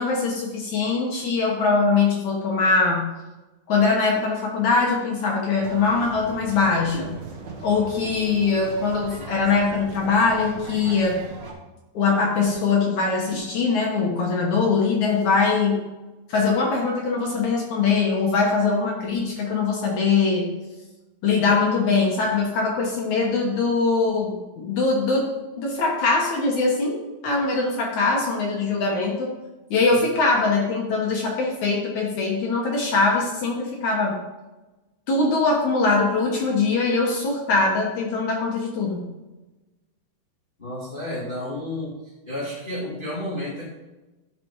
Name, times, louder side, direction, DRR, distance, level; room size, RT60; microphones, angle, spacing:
voice 1, 0.0-3.0 3.7-7.1 7.6-11.2 11.9-15.8 16.3-20.5 21.2-25.3 25.6-29.3 29.7-34.2 35.1-39.1, left 4 dB, 65° left, -1 dB, 2.0 m, -22 dB
sound 1, 5.6-11.5, right 3 dB, 55° right, 2.2 m, -38 dB
voice 2, 40.6-41.9 42.2-43.6, left 1 dB, 25° left, -8 dB, 1.1 m, -31 dB
13.0 x 5.2 x 4.7 m, 1.1 s
omnidirectional pair, 5.1 m